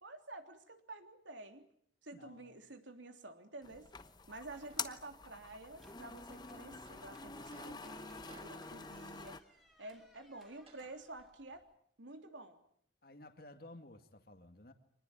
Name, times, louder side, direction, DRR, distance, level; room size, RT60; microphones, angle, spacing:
voice 1, 0.0-1.7 2.0-3.9 4.3-9.4 9.8-11.7 12.0-12.6, right 2 dB, 85° right, 6 dB, 3.3 m, -50 dB
voice 2, 2.1-2.6 13.0-14.7, left 1 dB, 55° left, 7 dB, 2.3 m, -55 dB
sound 1, 3.6-9.4, left 5 dB, 20° left, 1.0 m, -47 dB
sound 2, 4.6-5.2 5.9-11.0, right 2 dB, 30° right, 5.3 m, -62 dB
sound 3, 5.2-11.7, equal, ahead, 3.5 m, -69 dB
25.5 x 20.5 x 9.1 m, 0.63 s
head